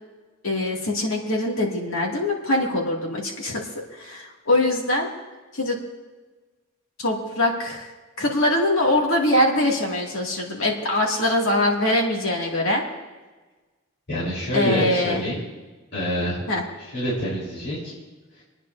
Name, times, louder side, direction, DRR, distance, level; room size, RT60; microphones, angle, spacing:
voice 1, 0.4-3.6 4.0-5.1 5.5-5.8 7.0-7.9 8.2-12.8 14.5-15.2 16.5-16.6, left 1 dB, 85° left, -2 dB, 2.3 m, -23 dB
voice 2, 14.1-15.4 15.9-16.4 16.9-17.9 18.4-18.5, equal, 55° left, -8 dB, 4.0 m, -26 dB
28.5 x 9.7 x 2.7 m, 1.3 s
head